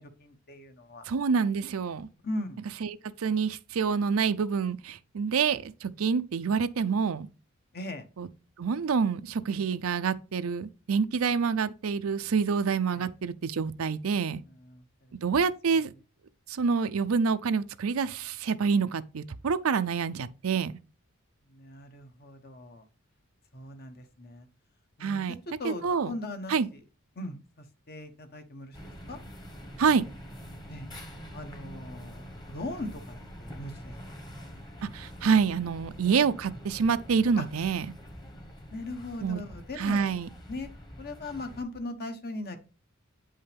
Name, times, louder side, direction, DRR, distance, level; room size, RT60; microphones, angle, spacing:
voice 1, 0.0-1.0 2.2-2.6 7.7-8.0 12.9-13.1 14.5-15.1 21.5-22.8 23.5-24.5 25.0-26.8 27.2-29.2 30.7-30.9 31.3-33.1 33.4-33.9 37.4-37.5 38.7-40.2 40.5-40.7 41.0-42.6, left 2 dB, 50° left, 1.1 m, -39 dB
voice 2, 1.1-2.1 2.8-7.3 8.2-8.3 8.6-14.4 15.2-15.9 16.5-20.8 25.0-25.4 25.6-26.1 26.5-26.7 29.8-30.0 34.9-37.9 39.2-39.4 39.8-40.3, right 5 dB, 80° right, 0.5 m, -27 dB
sound 1, 28.7-41.6, equal, 20° left, 1.3 m, -45 dB
8.8 x 5.5 x 3.4 m
head